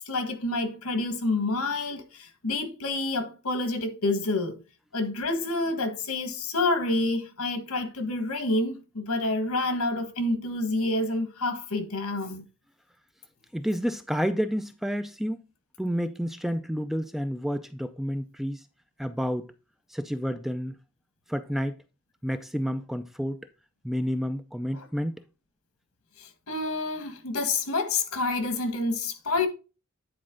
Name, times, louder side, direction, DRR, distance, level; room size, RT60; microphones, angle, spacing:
voice 1, 0.0-4.6 4.9-12.4 26.2-29.5, left 2 dB, 85° left, 1.5 m, -28 dB
voice 2, 13.5-15.4 15.8-18.6 19.0-19.5 19.9-20.7 21.3-21.8 22.2-23.5 23.8-25.2, equal, ahead, 0.3 m, -30 dB
9.7 x 4.2 x 3.7 m
head